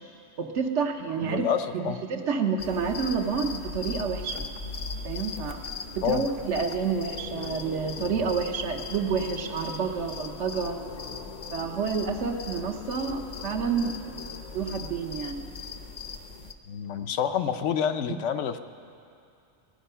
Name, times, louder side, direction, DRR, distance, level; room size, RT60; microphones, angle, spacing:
voice 1, 0.4-1.5 1.7-4.4 5.0-5.6 6.0-10.8 11.5-14.0 14.5-15.5 18.1-18.2, right 5 dB, 75° right, 4 dB, 1.2 m, -29 dB
voice 2, 1.2-2.0 6.0-6.3 16.7-18.6, left 8 dB, 80° left, 9 dB, 0.9 m, -28 dB
sound 1, 2.6-16.5, left 4 dB, 45° left, 0.6 m, -38 dB
16.5 x 10.5 x 5.6 m, 2.5 s
omnidirectional pair, 1.2 m